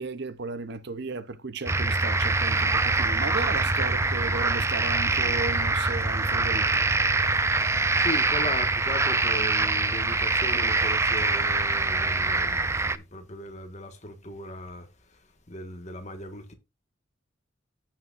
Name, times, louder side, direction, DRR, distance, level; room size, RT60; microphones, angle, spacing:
voice 1, 0.0-6.9, right 3 dB, 55° right, 0.8 m, -35 dB
sound 1, 1.7-13.0, right 3 dB, 15° right, 0.5 m, -24 dB
voice 2, 8.0-14.9 15.5-16.5, left 1 dB, 35° left, 1.7 m, -37 dB
15.0 x 5.9 x 2.6 m
head